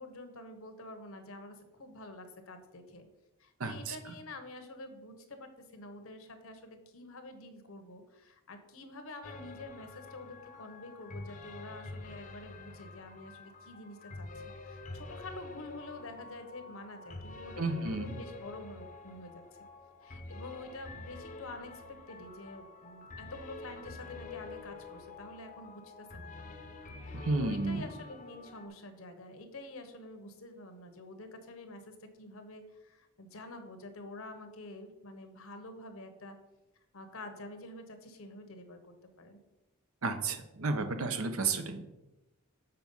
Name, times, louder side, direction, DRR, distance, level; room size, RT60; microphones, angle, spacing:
voice 1, 0.0-3.1 3.4-14.3 14.6-19.4 20.0-26.5 27.1-36.4 36.9-39.4, left 2 dB, 65° left, 7 dB, 1.0 m, -48 dB
voice 2, 3.6-4.0 17.6-18.2 27.1-27.8 40.0-41.8, right 3 dB, 70° right, 7 dB, 0.8 m, -32 dB
sound 1, 9.2-28.7, left 2 dB, 35° left, 0.7 m, -47 dB
6.8 x 4.6 x 5.5 m, 0.97 s
head